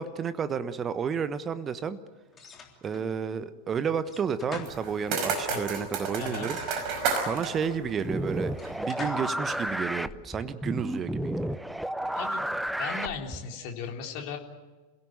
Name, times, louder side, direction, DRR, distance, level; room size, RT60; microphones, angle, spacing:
voice 1, 0.0-2.0 2.8-6.6 7.2-11.6, right 6 dB, 25° right, 13 dB, 1.2 m, -31 dB
sound 1, 2.3-3.1 4.0-5.4 6.4-7.5 8.5-9.4, left 4 dB, 20° left, 3.5 m, -44 dB
sound 2, 4.7-8.8, right 5 dB, 40° right, 5.3 m, -32 dB
voice 2, 6.2-6.5 12.1-12.4 12.8-14.4, left 6 dB, 45° left, 2 dB, 3.7 m, -36 dB
sound 3, 8.0-13.5, right 1 dB, ahead, 0.7 m, -32 dB
28.0 x 17.0 x 9.2 m, 1.3 s
figure-of-eight pair, 90°, 0 cm